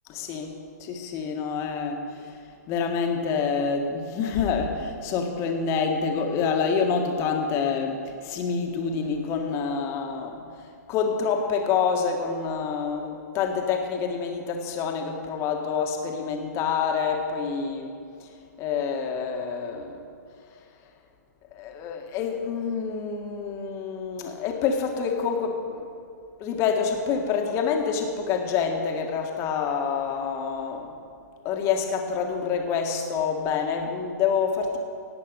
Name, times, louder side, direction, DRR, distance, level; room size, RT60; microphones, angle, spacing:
voice 1, 0.1-0.5 0.8-2.4 2.7-17.9 18.2-18.3 18.6-19.9 21.5-25.9 26.4-30.9 31.4-34.8, left 6 dB, 30° left, 3 dB, 1.8 m, -27 dB
18.0 x 8.4 x 5.3 m, 2.3 s
figure-of-eight pair, 120°, 10 cm